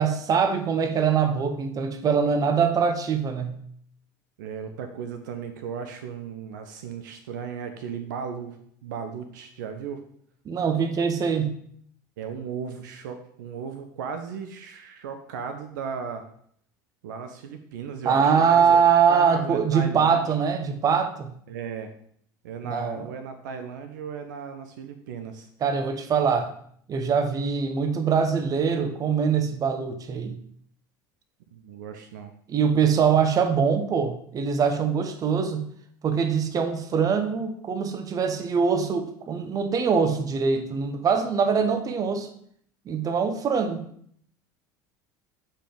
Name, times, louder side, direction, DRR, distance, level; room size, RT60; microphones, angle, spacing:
voice 1, 0.0-3.5 10.4-11.6 18.0-21.3 22.7-23.1 25.6-26.5 26.9-30.4 32.5-35.7 36.0-42.3 42.9-43.9, right 6 dB, 35° right, 8 dB, 0.9 m, -23 dB
voice 2, 4.4-8.6 8.8-10.0 12.2-16.3 17.0-18.8 19.1-20.3 21.5-21.9 22.4-25.5 31.5-32.3, right 6 dB, 70° right, 7 dB, 0.6 m, -36 dB
6.5 x 5.0 x 3.8 m, 0.64 s
figure-of-eight pair, 70°, 11 cm